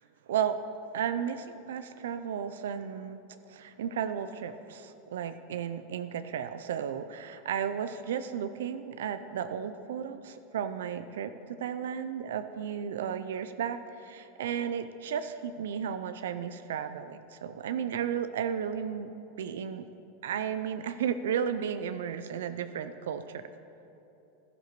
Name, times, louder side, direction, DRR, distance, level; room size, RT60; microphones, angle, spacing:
voice 1, 0.3-0.6 0.9-3.2 3.5-19.1 19.4-19.8 20.2-23.4, right 8 dB, 90° right, 11 dB, 0.4 m, -34 dB
12.0 x 11.5 x 3.0 m, 2.9 s
supercardioid pair, 135°, 0 cm